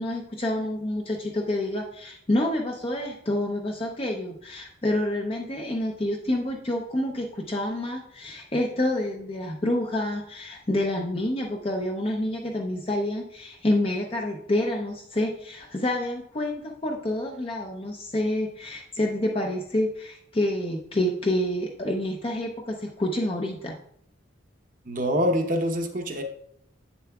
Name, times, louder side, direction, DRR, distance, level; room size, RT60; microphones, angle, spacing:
voice 1, 0.0-23.7, left 1 dB, 30° left, 0 dB, 0.5 m, -28 dB
voice 2, 24.8-26.2, equal, 40° right, 4 dB, 0.8 m, -25 dB
8.5 x 6.9 x 2.3 m, 0.70 s
head